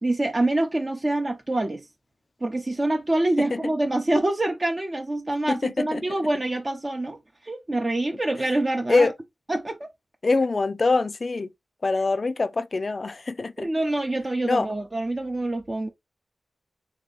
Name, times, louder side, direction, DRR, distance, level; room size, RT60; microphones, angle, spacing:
voice 1, 0.0-1.9 2.4-7.2 7.4-9.1 9.5-9.9 13.6-15.9, right 2 dB, 30° right, 0.6 m, -26 dB
voice 2, 5.5-6.0 8.9-9.1 10.2-11.5 11.8-13.7 14.4-14.7, left 3 dB, 45° left, 0.4 m, -24 dB
3.3 x 2.9 x 3.7 m
wide cardioid pair, 75°, 0 cm